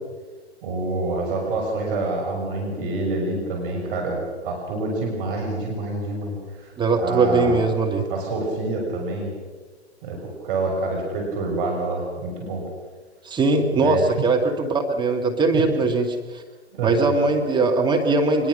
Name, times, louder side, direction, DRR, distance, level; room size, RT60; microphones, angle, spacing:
voice 1, 0.6-6.7 7.0-7.6 8.1-9.3 10.0-12.6 13.8-14.0 15.5-15.6 16.7-17.1, right 2 dB, 50° right, 0 dB, 6.7 m, -27 dB
voice 2, 6.8-8.1 13.2-16.4 16.8-18.5, right 3 dB, 15° right, 2 dB, 1.8 m, -20 dB
23.5 x 21.5 x 6.6 m, 1.4 s
hypercardioid pair, 120°, 34 cm